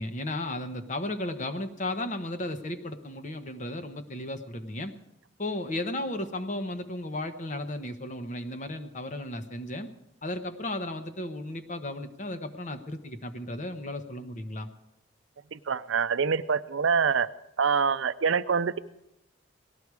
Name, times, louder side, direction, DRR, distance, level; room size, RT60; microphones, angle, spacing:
voice 1, 0.0-4.9 5.4-9.9 10.2-14.7, left 1 dB, 35° left, 8 dB, 1.0 m, -34 dB
voice 2, 15.5-17.3 17.6-18.8, right 6 dB, 65° right, 15 dB, 0.5 m, -25 dB
18.5 x 13.0 x 4.8 m, 0.85 s
head